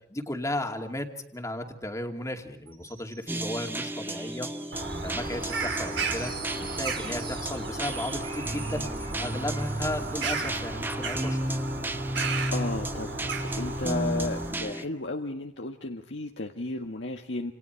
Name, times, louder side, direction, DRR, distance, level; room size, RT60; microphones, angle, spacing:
voice 1, 0.1-4.5 5.0-6.3 6.6-8.9 9.2-11.6, left 1 dB, 15° left, 4 dB, 2.6 m, -35 dB
sound 1, 2.7-10.6, right 5 dB, 30° right, 2.4 m, -45 dB
sound 2, 3.3-14.9, right 1 dB, 10° right, 1.1 m, -33 dB
Bird vocalization bird call bird song, 4.7-14.5, right 3 dB, 75° right, 5.0 m, -35 dB
voice 2, 12.5-13.2 13.6-17.5, left 2 dB, 75° left, 2 dB, 1.6 m, -33 dB
29.0 x 28.0 x 4.6 m, 0.68 s
head